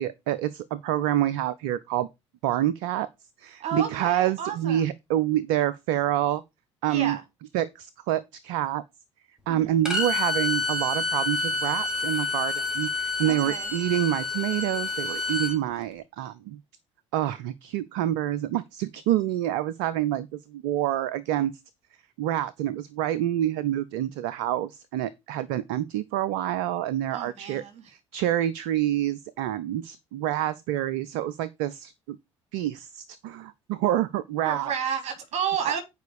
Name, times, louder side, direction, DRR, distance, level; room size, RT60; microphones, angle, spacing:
voice 1, 0.0-2.1 2.4-3.1 3.4-6.4 6.8-7.2 7.5-8.8 9.5-16.6 17.1-21.5 22.2-27.6 27.9-32.2 32.5-34.7 35.7-35.8, right 12 dB, 60° right, 0.6 m, -27 dB
voice 2, 3.6-4.8 6.9-7.2 9.5-9.7 13.2-13.7 27.1-27.9 34.4-35.8, right 7 dB, 45° right, 3.5 m, -31 dB
Bowed string instrument, 9.8-15.6, left 3 dB, 5° right, 2.7 m, -28 dB
9.1 x 5.0 x 4.9 m
figure-of-eight pair, 55°, 16 cm